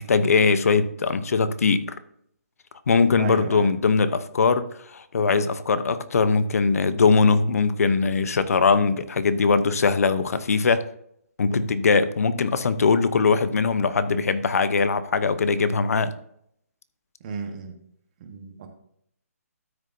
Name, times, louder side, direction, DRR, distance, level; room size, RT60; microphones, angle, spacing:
voice 1, 0.0-1.9 2.9-10.8 11.4-16.1, left 4 dB, 70° left, 13 dB, 0.8 m, -21 dB
voice 2, 3.2-3.7 17.2-17.8 18.2-18.7, right 5 dB, 30° right, 5 dB, 1.3 m, -34 dB
13.0 x 6.5 x 2.7 m, 0.70 s
hypercardioid pair, 165°, 8 cm